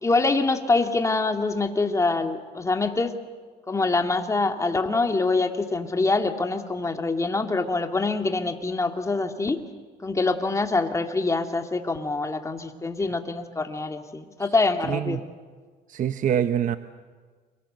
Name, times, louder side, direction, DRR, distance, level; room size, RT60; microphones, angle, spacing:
voice 1, 0.0-3.1 3.7-9.6 10.0-15.3, left 3 dB, 20° left, 6 dB, 2.2 m, -25 dB
voice 2, 14.9-15.2 15.9-16.8, right 9 dB, 50° right, 10 dB, 0.9 m, -25 dB
29.0 x 23.5 x 7.8 m, 1.5 s
cardioid pair, 110°, 17 cm